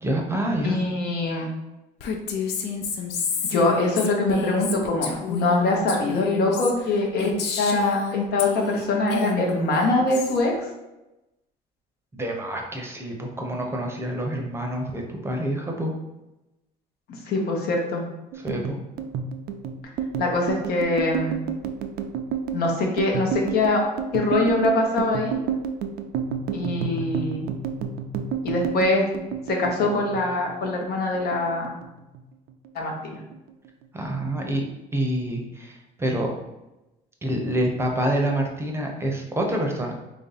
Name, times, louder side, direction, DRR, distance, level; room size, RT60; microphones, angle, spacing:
voice 1, 0.0-0.8 12.1-15.9 18.4-18.8 33.9-34.6 34.9-36.3 37.2-39.9, right 1 dB, 15° right, 1 dB, 0.7 m, -27 dB
voice 2, 0.6-1.5 3.5-10.7 17.3-18.0 20.2-21.4 22.5-23.8 24.1-25.4 26.5-27.5 28.4-29.1 29.5-31.7 32.7-33.2, left 2 dB, 70° left, 1 dB, 0.9 m, -23 dB
Female speech woman speaking, 2.0-8.8 9.1-10.4, left 5 dB, 85° left, 0.5 m, -29 dB
sound 1, 18.3-30.9 31.1-32.2 32.5-32.8 33.1-33.8, right 6 dB, 65° right, 0.4 m, -30 dB
3.2 x 2.7 x 3.9 m, 0.98 s
cardioid pair, 110°, 17 cm